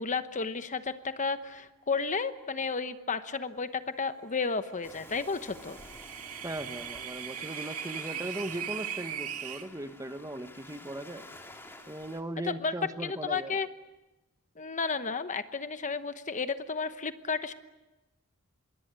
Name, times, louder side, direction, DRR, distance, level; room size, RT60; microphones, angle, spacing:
voice 1, 0.0-5.8 12.5-12.7 13.0-13.7 14.6-17.5, left 4 dB, 35° left, 10 dB, 1.0 m, -32 dB
Waves surf, 4.8-12.2, left 1 dB, 10° left, 2.5 m, -50 dB
sound 1, 5.4-9.6, right 10 dB, 85° right, 2.1 m, -39 dB
voice 2, 6.4-11.3 11.9-13.6, right 1 dB, 15° right, 9 dB, 1.3 m, -38 dB
26.0 x 22.5 x 8.9 m, 1.0 s
head